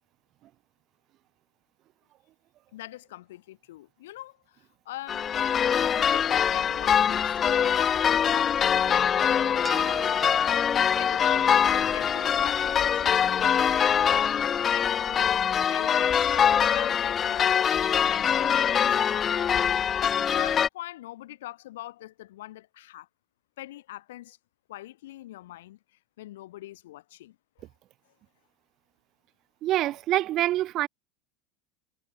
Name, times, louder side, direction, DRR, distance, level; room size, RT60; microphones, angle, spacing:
voice 1, 2.7-5.5 5.9-9.4 9.8-10.5 11.0-14.4 14.7-19.5 20.0-23.1 23.6-24.4 24.7-25.8 26.2-27.7, left 15 dB, 75° left, 1.9 m, -43 dB
sound 1, 5.1-20.7, left 8 dB, 35° left, 0.5 m, -23 dB
sound 2, 9.6-18.2, right 5 dB, 25° right, 4.5 m, -46 dB
voice 2, 29.6-30.9, right 14 dB, 50° right, 0.4 m, -25 dB
hypercardioid pair, 90°, 0 cm